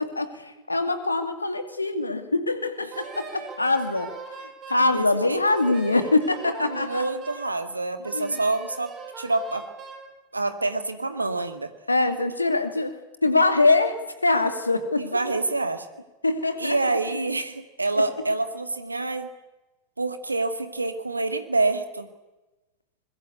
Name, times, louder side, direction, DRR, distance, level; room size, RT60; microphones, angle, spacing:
voice 1, 0.0-4.1 4.4-7.1 8.1-8.4 11.9-15.0 16.2-16.8, left 2 dB, 80° left, 9 dB, 2.4 m, -24 dB
Wind instrument woodwind instrument, 2.9-4.9 5.5-7.5 8.0-10.1, right 5 dB, 25° right, 8.0 m, -40 dB
voice 2, 4.9-5.4 6.7-9.6 10.3-11.7 15.0-15.8 16.6-19.3 20.0-22.1, right 2 dB, 80° right, 9 dB, 2.1 m, -27 dB
24.5 x 21.5 x 8.4 m, 1.0 s
figure-of-eight pair, 90°, 0 cm